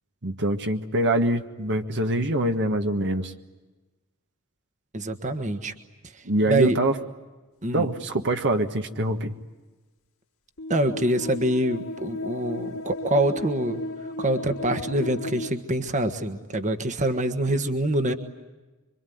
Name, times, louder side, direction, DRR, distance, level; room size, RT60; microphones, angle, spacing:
voice 1, 0.2-3.3 6.2-6.9 7.7-9.3, right 1 dB, 55° right, 5 dB, 1.6 m, -24 dB
voice 2, 4.9-5.7 6.5-6.8 7.6-7.9 10.7-13.8 14.2-18.1, right 1 dB, 35° right, 7 dB, 1.5 m, -25 dB
sound 1, 10.6-15.5, left 2 dB, 70° left, 2.6 m, -35 dB
26.0 x 24.5 x 9.4 m, 1.2 s
head